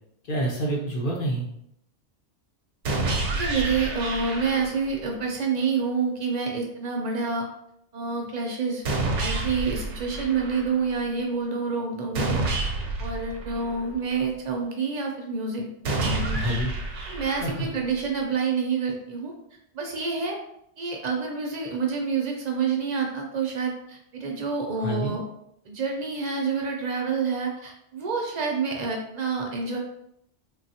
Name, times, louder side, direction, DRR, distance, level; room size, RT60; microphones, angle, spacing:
voice 1, 0.3-1.5 16.3-16.7 17.4-17.7 24.8-25.1, right 1 dB, 55° left, -2 dB, 0.7 m, -27 dB
sound 1, 2.8-4.9 8.8-10.9 12.1-14.2 15.8-17.9, right 2 dB, 85° right, 0.9 m, -29 dB
voice 2, 3.3-7.5 7.9-8.8 9.2-12.4 13.0-15.7 15.9-16.5 17.1-19.3 19.7-20.4 20.8-25.2 25.7-29.8, right 5 dB, 60° right, 1 dB, 0.4 m, -28 dB
3.1 x 2.3 x 2.7 m, 0.76 s
omnidirectional pair, 1.2 m